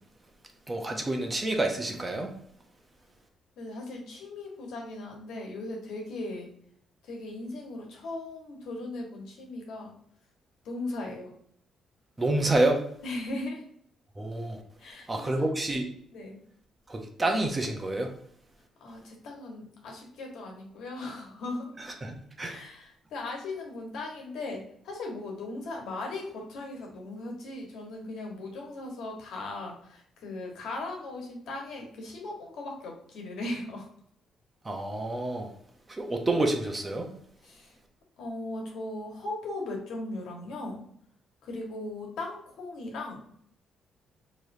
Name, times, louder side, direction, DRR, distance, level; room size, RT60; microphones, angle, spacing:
voice 1, 0.7-2.3 12.2-12.8 14.2-14.6 15.1-15.9 16.9-18.1 22.0-22.6 34.6-35.5 35.9-37.1, right 2 dB, 20° right, 3 dB, 0.9 m, -28 dB
voice 2, 3.6-6.5 7.0-9.9 10.6-11.3 13.0-13.6 14.8-15.5 16.1-16.4 18.8-21.7 22.4-33.9 37.4-37.8 38.2-40.8 41.4-43.3, left 2 dB, 80° left, 0 dB, 1.3 m, -38 dB
4.6 x 3.1 x 2.7 m, 0.66 s
cardioid pair, 90°, 0 cm